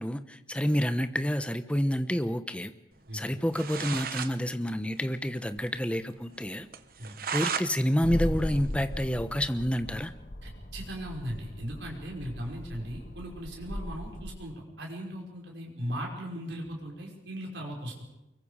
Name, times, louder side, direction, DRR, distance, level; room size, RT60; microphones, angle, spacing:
voice 1, 0.0-2.7 3.1-6.7 7.3-10.1, equal, 5° left, 10 dB, 1.0 m, -29 dB
sound 1, 3.3-3.4 3.5-4.3 4.7-4.8 5.0-5.1 5.5-5.6 6.0-6.1 6.7-7.7 8.1-9.4, right 6 dB, 50° right, 1.2 m, -35 dB
sound 2, 8.0-14.3, left 1 dB, 50° left, 1.8 m, -38 dB
voice 2, 10.4-18.0, equal, 70° right, -1 dB, 5.6 m, -38 dB
24.0 x 22.5 x 5.1 m, 0.91 s
head